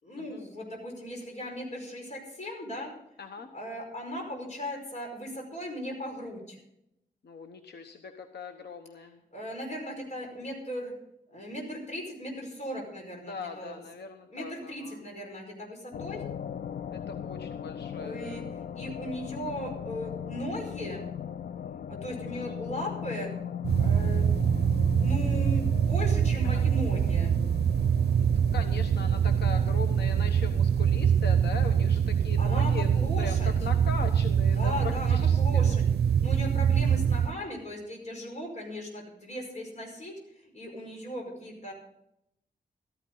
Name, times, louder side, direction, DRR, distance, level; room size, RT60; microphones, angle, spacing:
voice 1, 0.0-2.9 3.5-6.6 9.3-10.9 11.3-13.8 14.3-16.2 18.0-21.0 21.9-23.3 23.8-24.3 25.0-27.3 32.4-33.5 34.5-41.7, left 1 dB, 45° left, 1 dB, 5.0 m, -37 dB
voice 2, 3.2-3.5 7.2-9.2 13.3-15.0 16.9-18.5 22.3-22.6 26.5-26.6 28.2-35.7, left 5 dB, 85° left, 6 dB, 1.0 m, -40 dB
sound 1, 15.9-34.6, left 8 dB, 65° left, 0.4 m, -40 dB
sound 2, 23.6-37.3, right 8 dB, 85° right, 0.6 m, -24 dB
15.0 x 14.0 x 3.9 m, 0.81 s
wide cardioid pair, 150°, 17 cm